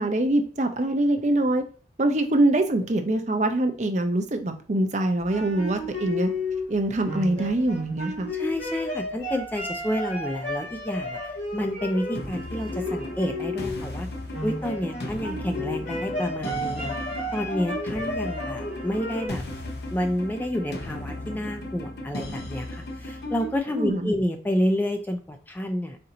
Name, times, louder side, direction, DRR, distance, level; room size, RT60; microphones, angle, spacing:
voice 1, 0.0-1.6 2.0-6.3 6.7-8.3 23.8-24.1, right 1 dB, 40° right, 6 dB, 0.6 m, -24 dB
sound 1, 5.2-13.9 14.3-19.3, left 1 dB, 85° left, 2.2 m, -33 dB
voice 2, 8.3-14.1 14.4-17.0 17.3-19.4 19.9-26.0, equal, 10° left, 5 dB, 0.3 m, -29 dB
sound 2, 12.1-23.6, left 1 dB, 65° left, 0.7 m, -36 dB
4.3 x 2.6 x 3.8 m, 0.39 s
head